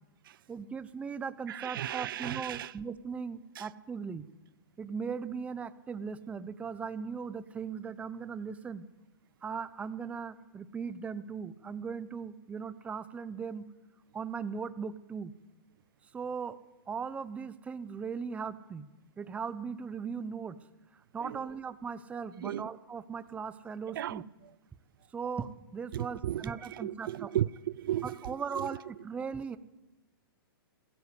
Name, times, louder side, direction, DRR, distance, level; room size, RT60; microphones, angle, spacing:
voice 1, 0.5-4.3 4.8-8.9 9.4-13.7 14.1-15.3 16.1-16.6 16.9-18.9 19.2-20.6 21.1-24.2 25.1-27.3 28.0-29.6, right 6 dB, 10° right, 0.8 m, -38 dB
voice 2, 1.5-2.7 3.6-3.7 21.2-21.4 22.4-22.7 24.0-24.2 25.9-28.7, right 12 dB, 65° right, 0.6 m, -35 dB
20.5 x 17.0 x 8.4 m
hypercardioid pair, 150°, 12 cm